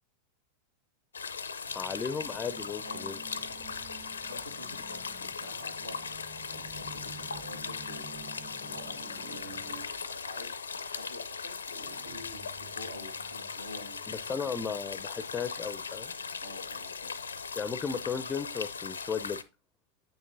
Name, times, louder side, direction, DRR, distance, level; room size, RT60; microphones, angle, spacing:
sound 1, 1.1-19.4, left 5 dB, 75° left, 0.5 m, -39 dB
voice 1, 1.7-3.2 14.1-16.1 17.6-19.4, left 6 dB, 20° left, 15 dB, 0.5 m, -35 dB
sound 2, 1.7-9.9, right 5 dB, 20° right, 0.9 m, -50 dB
sound 3, 3.3-4.6 6.5-7.6 9.2-10.2 11.8-14.5, right 7 dB, 45° right, 3.2 m, -56 dB
voice 2, 4.3-10.6 10.9-14.1 16.4-17.1, left 1 dB, 85° right, 5 dB, 1.5 m, -49 dB
8.3 x 6.5 x 2.6 m, 0.27 s
figure-of-eight pair, 90°, 0 cm